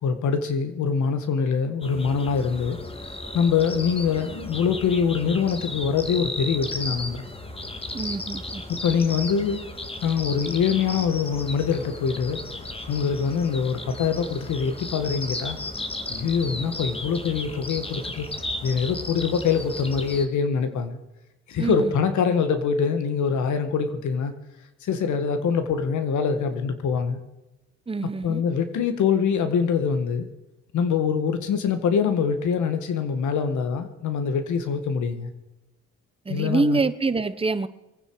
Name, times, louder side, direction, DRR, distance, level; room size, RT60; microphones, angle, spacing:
voice 1, 0.0-2.8 3.3-7.2 8.7-9.6 10.0-12.4 12.9-15.6 16.1-18.3 18.6-21.0 21.5-24.3 24.8-27.2 28.2-30.3 30.7-35.3 36.3-36.8, left 6 dB, 75° left, 9 dB, 1.9 m, -24 dB
sound 1, 1.8-20.3, left 2 dB, 20° left, 1.8 m, -35 dB
voice 2, 7.9-8.6 21.6-21.9 27.9-28.4 36.2-37.7, right 3 dB, 20° right, 12 dB, 1.0 m, -25 dB
23.0 x 9.6 x 4.8 m, 0.96 s
cardioid pair, 90°, 30 cm